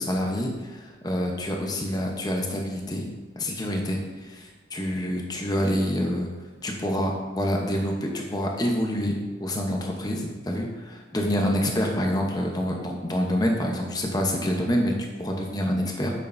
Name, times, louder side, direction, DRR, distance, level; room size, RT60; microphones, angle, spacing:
voice 1, 0.0-3.1 3.4-6.3 6.6-14.9 15.2-16.1, equal, 20° left, 1 dB, 0.8 m, -27 dB
8.7 x 6.5 x 2.6 m, 1.3 s
head